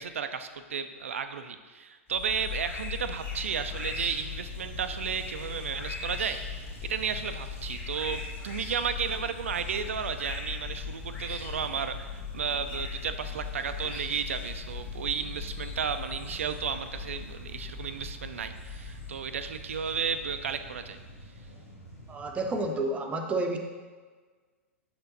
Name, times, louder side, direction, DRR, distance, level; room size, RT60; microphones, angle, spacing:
voice 1, 0.0-6.4 6.8-21.0, right 6 dB, 70° right, 10 dB, 0.4 m, -33 dB
sound 1, 2.1-21.5, left 5 dB, 25° left, 2.0 m, -39 dB
sound 2, 3.3-22.7, right 2 dB, 85° left, 1.6 m, -49 dB
voice 2, 22.1-23.6, right 2 dB, 15° right, 3 dB, 0.7 m, -30 dB
6.8 x 4.4 x 3.9 m, 1.4 s
figure-of-eight pair, 100°, 8 cm